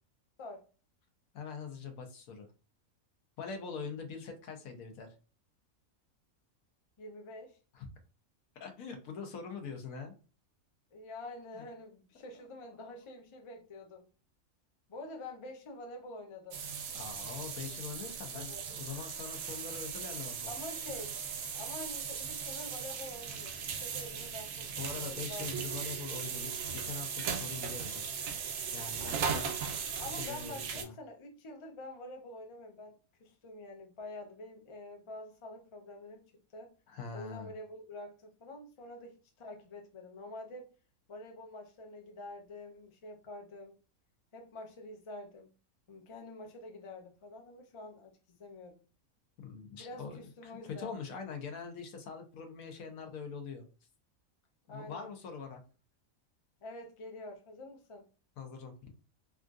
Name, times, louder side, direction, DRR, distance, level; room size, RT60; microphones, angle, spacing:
voice 1, 1.3-2.5 3.4-5.1 7.7-7.9 8.6-10.1 11.5-11.6 12.8-12.9 16.9-20.5 24.8-28.0 28.7-29.5 30.0-30.9 36.9-37.5 49.4-53.7 54.7-55.6 58.4-58.7, left 5 dB, 85° left, 5 dB, 1.2 m, -43 dB
voice 2, 7.0-7.6 10.9-14.1 14.9-16.6 18.3-18.7 20.4-21.2 21.5-25.5 30.0-36.2 36.5-36.7 37.1-40.7 41.1-43.7 44.3-45.5 45.9-48.8 49.8-50.9 54.7-55.1 56.6-58.0, left 2 dB, 50° left, 3 dB, 0.3 m, -47 dB
sound 1, 16.5-30.8, right 6 dB, 75° right, 1.0 m, -38 dB
3.5 x 2.6 x 2.3 m, 0.35 s
omnidirectional pair, 1.5 m